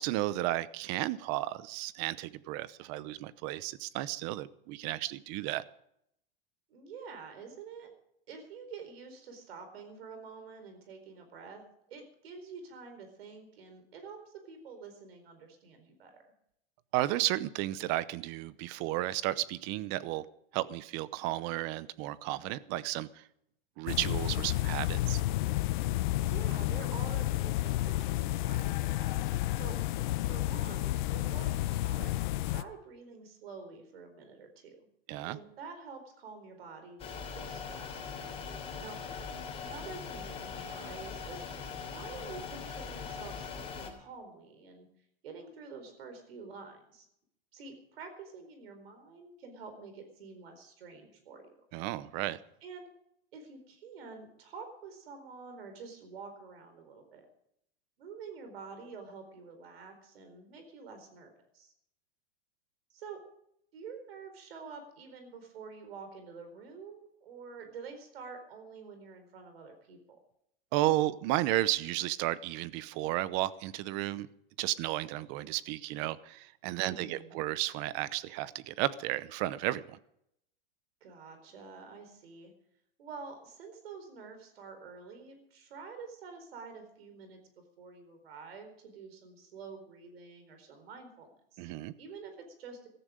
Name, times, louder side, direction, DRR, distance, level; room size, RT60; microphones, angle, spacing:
voice 1, 0.0-5.6 16.9-20.2 20.5-23.2 23.8-25.2 35.1-35.4 51.7-52.4 70.7-74.3 74.6-80.0 91.6-91.9, right 16 dB, 35° right, 18 dB, 0.7 m, -33 dB
voice 2, 6.7-7.9 8.3-11.6 11.9-16.2 26.1-29.2 29.6-29.8 30.3-32.1 32.4-34.9 35.2-38.0 38.8-39.0 39.6-41.5 41.9-44.9 45.2-47.1 47.5-51.5 52.6-52.9 53.3-57.3 58.0-61.7 62.9-63.2 63.7-70.2 76.8-77.4 81.0-82.5 83.0-91.7 92.0-92.9, right 5 dB, 80° right, 7 dB, 4.5 m, -48 dB
sound 1, 23.9-32.6, left 16 dB, 55° left, 0.8 m, -31 dB
sound 2, 37.0-43.9, left 5 dB, 20° left, 3.2 m, -41 dB
16.0 x 14.5 x 5.1 m, 0.74 s
supercardioid pair, 145°, 30 cm